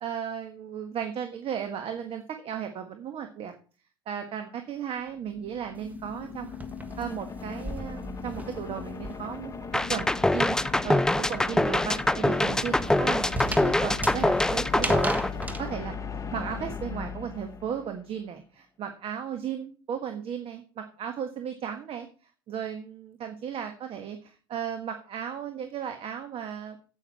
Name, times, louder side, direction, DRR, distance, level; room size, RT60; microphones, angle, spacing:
voice 1, 0.0-3.5 4.0-6.6 7.0-10.6 10.8-16.0 16.3-22.1 22.5-26.8, right 8 dB, 45° right, 6 dB, 1.5 m, -35 dB
sound 1, 4.9-18.0, left 5 dB, 25° left, 1.3 m, -38 dB
sound 2, 5.8-9.5 9.8-15.6, right 1 dB, 10° right, 1.5 m, -37 dB
sound 3, 9.7-15.9, left 1 dB, 5° left, 0.4 m, -24 dB
9.3 x 9.0 x 4.3 m, 0.38 s
hypercardioid pair, 80°, 13 cm